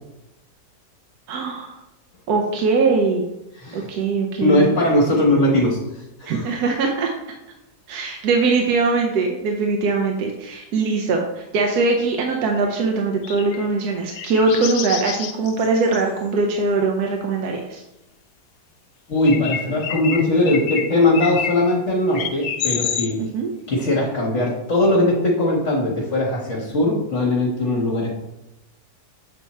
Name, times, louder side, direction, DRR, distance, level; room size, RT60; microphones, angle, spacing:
voice 1, 1.3-1.7 2.3-3.3 3.7-4.8 6.3-7.1 7.9-17.8 23.2-23.5, right 4 dB, 65° right, 1 dB, 1.1 m, -21 dB
voice 2, 4.4-5.8 6.2-6.5 19.1-23.2 23.7-28.1, left 1 dB, 45° left, -4 dB, 1.3 m, -19 dB
sound 1, 12.4-12.7 13.2-13.7 14.1-16.0 19.3-21.8 22.1-23.1, left 8 dB, 70° left, 0.9 m, -29 dB
7.1 x 3.5 x 4.2 m, 0.92 s
omnidirectional pair, 1.9 m